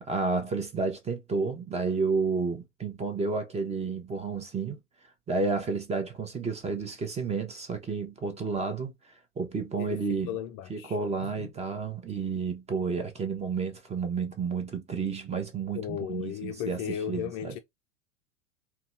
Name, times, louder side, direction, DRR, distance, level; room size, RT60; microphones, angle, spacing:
voice 1, 0.0-4.8 5.3-8.9 9.4-10.3 10.7-16.8 17.1-17.5, right 4 dB, 15° right, 0.8 m, -31 dB
voice 2, 9.8-11.5 15.7-17.6, left 9 dB, 35° left, 0.4 m, -36 dB
3.8 x 2.3 x 2.4 m
hypercardioid pair, 90°, 38 cm